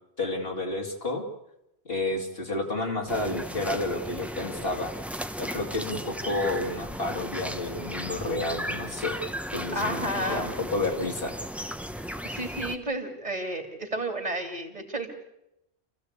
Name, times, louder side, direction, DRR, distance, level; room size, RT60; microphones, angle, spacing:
voice 1, 0.2-1.2 1.8-4.9 5.4-9.2 9.5-11.3, left 2 dB, 65° left, 1 dB, 3.0 m, -30 dB
sound 1, 3.1-12.8, equal, ahead, 1.0 m, -35 dB
voice 2, 9.7-10.5 12.2-15.1, right 1 dB, 40° right, 5 dB, 3.0 m, -32 dB
29.0 x 15.0 x 8.3 m, 0.86 s
omnidirectional pair, 1.1 m